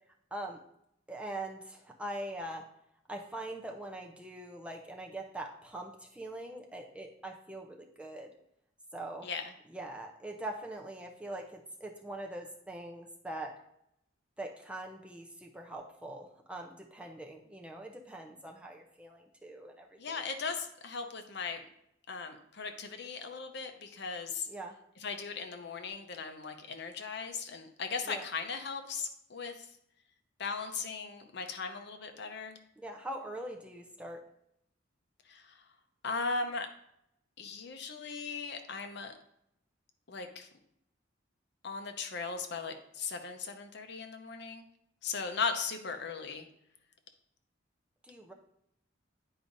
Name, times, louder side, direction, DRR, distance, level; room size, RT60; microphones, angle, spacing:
voice 1, 1.1-2.7 3.1-8.3 8.9-9.3 9.7-13.5 14.4-20.2 24.5-24.7 28.1-28.3 32.8-34.2 48.0-48.3, right 1 dB, 5° right, 1 dB, 0.6 m, -42 dB
voice 2, 20.0-21.6 22.1-24.5 25.0-29.7 30.4-32.6 35.3-35.6 36.0-36.7 37.4-39.1 40.1-40.5 41.6-44.7 45.0-46.4, left 4 dB, 60° left, 6 dB, 0.7 m, -38 dB
9.9 x 4.8 x 2.6 m, 0.76 s
head